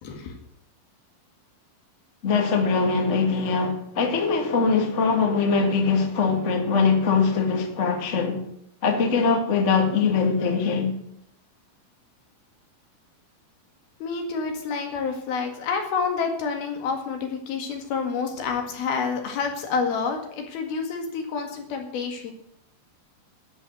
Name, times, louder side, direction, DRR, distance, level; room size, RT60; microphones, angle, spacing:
voice 1, 0.0-0.3 14.0-22.3, left 5 dB, 80° left, 3.9 m, -28 dB
voice 2, 2.2-8.4 8.8-10.9, left 4 dB, 35° left, 1.1 m, -22 dB
11.0 x 7.3 x 9.3 m
omnidirectional pair, 4.3 m